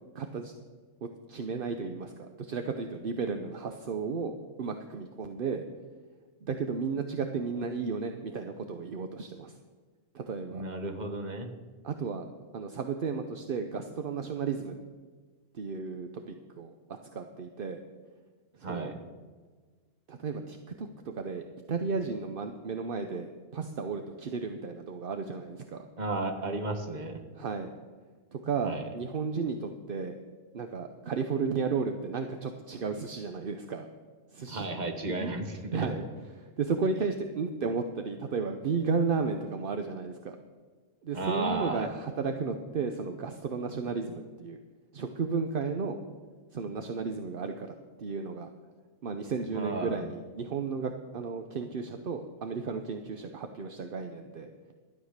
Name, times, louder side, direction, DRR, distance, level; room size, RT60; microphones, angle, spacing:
voice 1, 0.1-0.5 1.0-5.6 6.4-9.6 10.1-10.6 11.8-12.3 12.5-14.7 15.5-17.8 18.6-18.9 20.1-21.4 21.7-25.9 27.3-27.7 28.3-30.2 30.5-33.9 34.3-34.7 35.1-35.3 35.7-36.0 36.3-40.4 41.0-44.6 44.9-46.0 46.5-48.5 49.0-54.5, right 5 dB, 50° right, 6 dB, 0.8 m, -33 dB
voice 2, 10.5-11.5 18.6-19.0 26.0-27.2 28.6-28.8 34.5-35.9 41.1-41.9 49.5-50.0, right 2 dB, 35° right, 6 dB, 1.3 m, -33 dB
12.5 x 9.7 x 6.5 m, 1.4 s
omnidirectional pair, 1.5 m